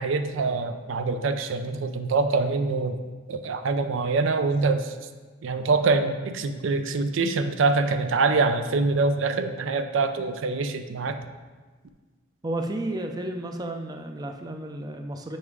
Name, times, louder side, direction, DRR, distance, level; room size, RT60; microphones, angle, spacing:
voice 1, 0.0-3.0 3.3-4.9 5.4-11.2, right 3 dB, 85° right, 8 dB, 0.4 m, -24 dB
voice 2, 12.4-15.4, right 1 dB, 20° right, 5 dB, 0.4 m, -32 dB
5.3 x 4.8 x 4.7 m, 1.3 s
head